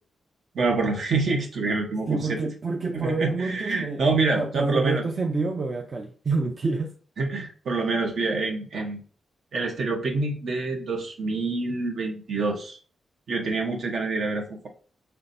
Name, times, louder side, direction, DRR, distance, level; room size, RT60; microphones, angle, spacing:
voice 1, 0.5-2.4 2.9-5.0 7.2-9.0 9.5-12.8 13.3-14.7, right 3 dB, 65° right, 1.1 m, -26 dB
voice 2, 2.1-4.1 4.3-6.9, right 3 dB, 40° right, 0.5 m, -27 dB
5.9 x 3.3 x 2.7 m
wide cardioid pair, 110°, 0 cm